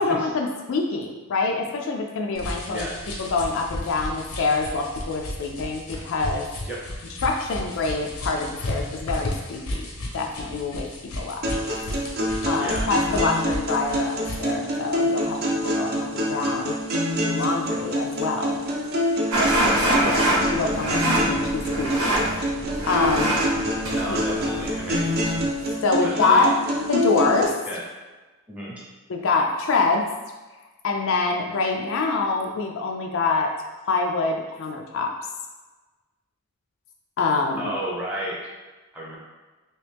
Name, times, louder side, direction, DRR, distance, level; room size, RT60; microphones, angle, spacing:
voice 1, 0.0-2.9 3.2-6.5 7.2-9.9 10.1-10.9 11.2-11.4 12.5-16.7 17.2-18.6 19.9-22.2 22.9-23.4 24.1-24.2 25.8-26.5 26.9-27.5 29.1-30.0 30.8-33.5 33.9-35.1 37.2-37.7, left 3 dB, 60° left, 2 dB, 0.4 m, -25 dB
sound 1, 2.3-14.6, left 1 dB, 85° left, 0.8 m, -34 dB
sound 2, 11.4-27.4, equal, 45° right, 0.6 m, -26 dB
voice 2, 12.5-12.9 23.9-25.1 26.0-26.5 27.7-27.8 28.5-28.8 37.6-38.4 38.9-39.2, right 1 dB, 5° right, -6 dB, 0.8 m, -32 dB
sound 3, 19.3-25.6, right 1 dB, 80° right, 0.9 m, -25 dB
3.0 x 2.9 x 3.4 m, 1.2 s
head